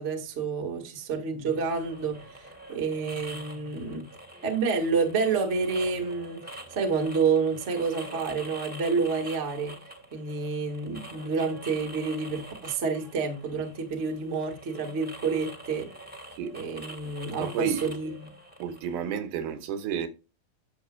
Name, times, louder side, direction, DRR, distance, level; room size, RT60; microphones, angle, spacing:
voice 1, 0.0-4.0 4.4-9.7 10.1-15.9 16.5-18.3, right 5 dB, 40° right, 1.1 m, -29 dB
sound 1, 1.5-19.0, right 1 dB, 15° right, 0.3 m, -45 dB
voice 2, 17.4-17.9 18.6-20.1, right 8 dB, 85° right, 2.9 m, -31 dB
10.0 x 7.2 x 2.3 m
omnidirectional pair, 4.2 m